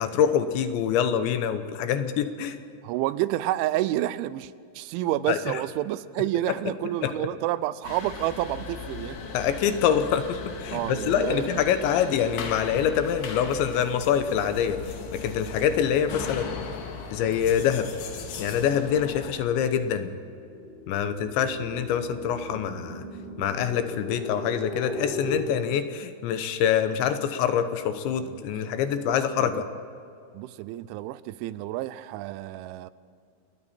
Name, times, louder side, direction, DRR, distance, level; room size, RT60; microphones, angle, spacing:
voice 1, 0.0-2.6 5.3-5.6 7.0-7.1 9.3-14.8 15.1-16.6 17.1-17.9 18.4-20.1 20.9-23.0 23.4-29.7, left 8 dB, 75° left, 9 dB, 3.2 m, -25 dB
voice 2, 2.8-9.2 10.7-11.6 28.2-28.4 29.1-29.6 30.3-32.9, right 14 dB, 85° right, 16 dB, 3.0 m, -29 dB
sound 1, 7.8-19.3, left 5 dB, 60° left, 3.3 m, -38 dB
sound 2, 18.0-25.4, left 1 dB, 30° left, 7.6 m, -39 dB
28.5 x 21.0 x 4.4 m, 2.5 s
omnidirectional pair, 5.5 m